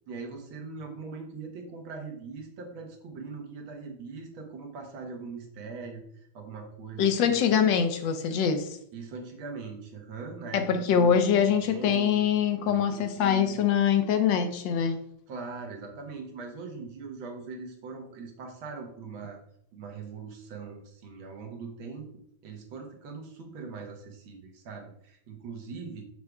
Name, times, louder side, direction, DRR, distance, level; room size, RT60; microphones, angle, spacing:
voice 1, 0.1-6.0 6.3-7.5 8.9-12.3 12.6-13.6 15.3-19.4 19.7-22.1 22.4-26.0, right 4 dB, 85° right, 3 dB, 2.0 m, -41 dB
voice 2, 7.0-8.8 10.5-15.0, left 8 dB, 75° left, 8 dB, 1.3 m, -24 dB
6.5 x 3.4 x 4.7 m, 0.71 s
omnidirectional pair, 2.1 m